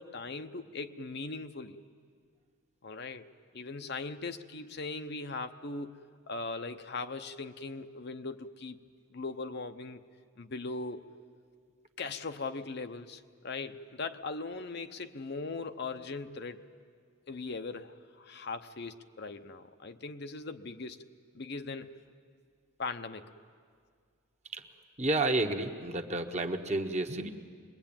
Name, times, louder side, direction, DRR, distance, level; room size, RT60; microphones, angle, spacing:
voice 1, 0.0-1.8 2.8-3.2 3.5-6.0 6.3-8.8 9.1-10.0 10.4-11.0 12.0-16.7 17.3-21.0 21.3-21.9 22.8-23.3, left 3 dB, 50° left, 8 dB, 0.8 m, -39 dB
voice 2, 25.0-27.3, right 2 dB, 35° right, 4 dB, 1.2 m, -30 dB
24.0 x 21.5 x 8.9 m, 2.1 s
head